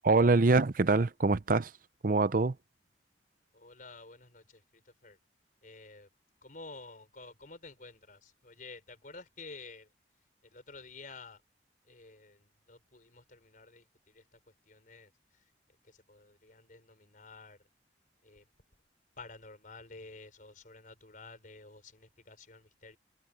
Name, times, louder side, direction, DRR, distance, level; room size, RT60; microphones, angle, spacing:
voice 1, 0.0-1.7 2.0-2.5, right 3 dB, 50° right, 0.7 m, -24 dB
voice 2, 3.5-5.2 5.6-6.1 6.4-9.9 10.4-11.4 11.9-14.4 14.7-15.4 15.8-17.6 18.2-18.4 19.2-23.0, left 3 dB, 50° left, 4.8 m, -51 dB
head